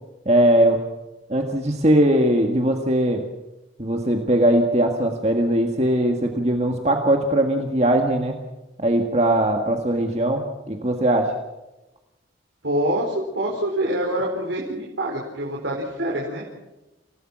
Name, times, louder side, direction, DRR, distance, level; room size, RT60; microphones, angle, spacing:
voice 1, 0.3-0.8 1.3-3.3 3.8-8.4 8.8-11.3, right 1 dB, 35° right, 3 dB, 1.8 m, -20 dB
voice 2, 12.6-16.4, right 1 dB, 70° right, -2 dB, 4.5 m, -25 dB
28.5 x 17.5 x 6.2 m, 1.0 s
head